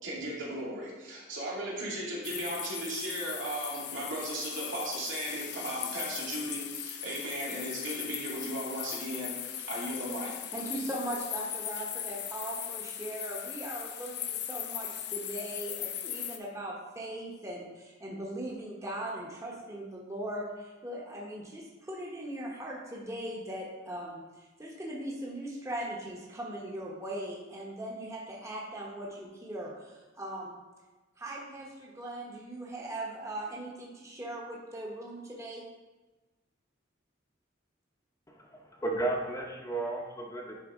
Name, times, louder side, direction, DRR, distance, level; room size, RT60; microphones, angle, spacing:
voice 1, 0.0-10.3, right 1 dB, 80° right, -6 dB, 2.4 m, -36 dB
sound 1, 2.2-16.4, left 10 dB, 60° left, 0.5 m, -39 dB
voice 2, 10.5-30.6 31.2-35.6, right 1 dB, 15° right, -3 dB, 1.0 m, -39 dB
voice 3, 38.3-40.6, right 2 dB, 15° left, 0 dB, 0.7 m, -34 dB
10.0 x 4.0 x 3.6 m, 1.2 s
head